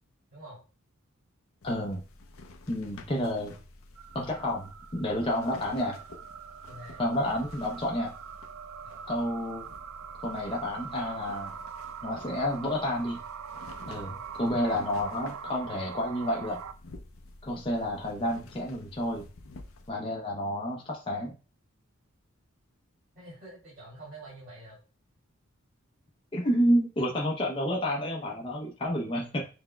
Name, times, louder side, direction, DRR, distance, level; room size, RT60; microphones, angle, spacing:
sound 1, 1.6-19.9, left 2 dB, 75° left, 0.6 m, -51 dB
voice 1, 1.6-2.0 2.7-3.6 4.1-6.0 7.0-8.1 9.1-9.6 10.2-11.5 12.0-13.2 13.9-16.6 17.4-19.3 19.9-21.3 26.3-29.5, equal, 25° left, -1 dB, 0.6 m, -30 dB
sound 2, 4.0-16.7, right 7 dB, 90° right, 0.4 m, -43 dB
voice 2, 6.6-7.0 7.3-7.4 8.8-9.1 14.2-14.3 23.1-24.8, right 1 dB, 40° right, -10 dB, 2.5 m, -47 dB
5.9 x 3.4 x 2.2 m, 0.33 s
head